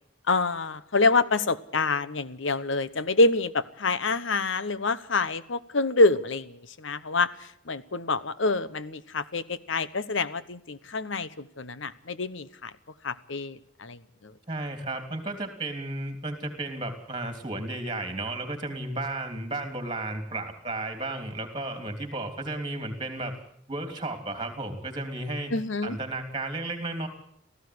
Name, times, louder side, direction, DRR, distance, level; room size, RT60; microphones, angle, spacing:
voice 1, 0.3-7.3 7.7-12.7 13.0-14.3 25.5-26.0, left 3 dB, 75° left, 15 dB, 1.0 m, -26 dB
voice 2, 14.5-23.3 23.7-25.5 25.8-27.1, right 2 dB, 25° right, 6 dB, 3.3 m, -33 dB
18.0 x 15.0 x 9.6 m, 0.69 s
head